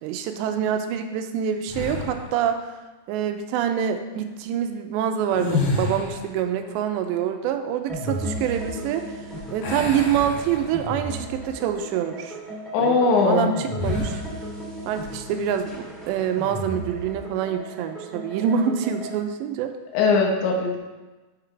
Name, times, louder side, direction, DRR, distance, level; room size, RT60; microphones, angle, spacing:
voice 1, 0.0-2.7 3.1-9.1 9.5-12.4 12.8-14.2 14.9-19.7, right 8 dB, 85° right, 7 dB, 2.8 m, -26 dB
sound 1, 1.7-2.3 5.2-6.3 9.6-11.0 11.5-11.7 13.7-14.2, left 3 dB, 75° left, 4.9 m, -28 dB
sound 2, 7.9-19.2, equal, ahead, 1.5 m, -35 dB
voice 2, 12.7-13.5 19.9-20.8, left 4 dB, 90° left, 0 dB, 3.5 m, -20 dB
8.5 x 5.9 x 4.6 m, 1.2 s
omnidirectional pair, 5.0 m